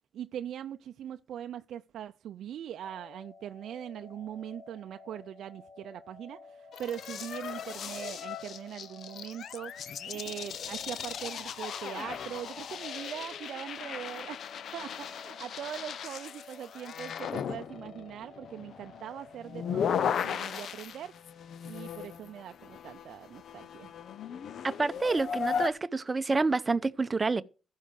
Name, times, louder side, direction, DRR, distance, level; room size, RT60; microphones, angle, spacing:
voice 1, 0.1-14.5 14.7-21.3 21.6-23.9, right 10 dB, 75° right, 0.5 m, -41 dB
sound 1, 2.8-20.8, left 3 dB, 30° left, 2.9 m, -53 dB
sound 2, 6.7-25.7, left 8 dB, 70° left, 0.6 m, -37 dB
voice 2, 24.6-27.4, right 3 dB, 30° right, 0.8 m, -28 dB
14.5 x 5.6 x 6.4 m
cardioid pair, 75°, 0 cm